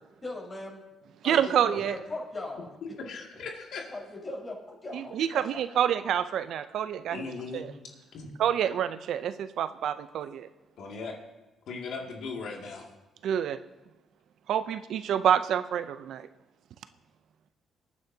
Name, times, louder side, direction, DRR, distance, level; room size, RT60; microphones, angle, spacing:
voice 1, 0.2-0.8 1.2-2.7 3.9-5.1, left 2 dB, 25° left, -2 dB, 4.6 m, -38 dB
voice 2, 1.2-1.9 4.9-7.7 8.4-10.5 13.2-13.6 14.5-16.3, right 9 dB, 75° right, 12 dB, 0.5 m, -27 dB
voice 3, 3.0-3.9 7.1-7.7 8.1-8.3 10.8-11.2 11.7-12.9, left 4 dB, 75° left, 0 dB, 2.2 m, -38 dB
24.0 x 9.5 x 2.8 m, 1.1 s
cardioid pair, 90°, 0 cm